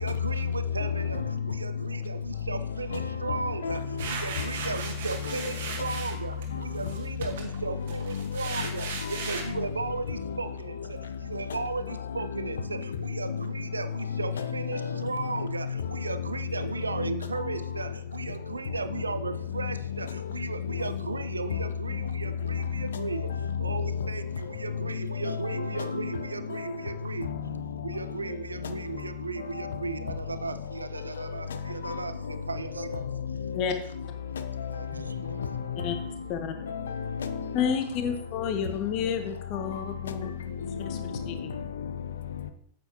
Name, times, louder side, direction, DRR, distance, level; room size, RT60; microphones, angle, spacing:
voice 1, 0.0-27.3 27.8-33.1 34.4-35.4, right 4 dB, 75° right, 0.4 m, -36 dB
voice 2, 0.8-1.3 2.9-4.1 4.4-4.5 5.2-5.5 6.5-6.6 8.1-8.7 9.0-9.2 9.5-9.7 10.2-10.4 11.5-11.6 12.1-12.5 13.3-13.4 14.1-15.8 16.6-17.5 20.7-20.9 21.5-21.6 22.5-23.1 23.7-23.9 24.7-24.8 25.2-26.1 26.5-26.7 27.2-27.4 28.6-29.0 29.5-29.8 31.5-31.6 31.8-32.4 32.9-33.0 33.3-33.6 34.3-34.7 35.1-36.1 36.6-37.7 38.5-38.6 40.1-41.9, left 6 dB, 65° left, 0.6 m, -33 dB
sound 1, 4.0-6.4 6.8-9.5, right 5 dB, 60° right, 1.4 m, -37 dB
voice 3, 37.5-40.3 40.9-41.0 41.3-41.6, left 7 dB, 40° left, 0.8 m, -30 dB
9.1 x 7.8 x 2.9 m
figure-of-eight pair, 90°, 0 cm